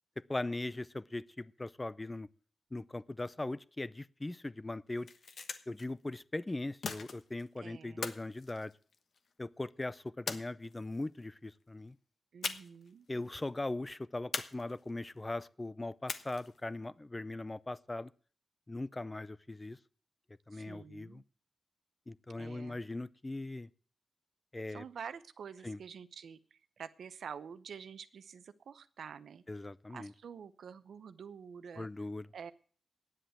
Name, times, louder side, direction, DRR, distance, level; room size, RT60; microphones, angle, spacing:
voice 1, 0.3-2.3 2.7-5.1 5.7-8.7 9.4-12.0 13.1-18.1 18.7-19.8 20.5-21.2 22.1-23.7 24.5-24.8 25.6-25.8 29.5-30.1 31.8-32.3, left 2 dB, 20° left, 0.5 m, -40 dB
sound 1, 4.9-5.9 6.8-7.5 8.0-9.3 10.3-11.0 12.4-12.9 13.2-13.3 14.3-15.1 16.1-16.6, left 5 dB, 65° left, 1.1 m, -41 dB
voice 2, 7.6-8.0 12.3-13.1 20.5-21.2 22.4-22.8 24.7-29.4 29.9-31.9 32.3-32.5, right 7 dB, 80° right, 0.7 m, -48 dB
9.8 x 8.0 x 8.8 m
wide cardioid pair, 100°, 0 cm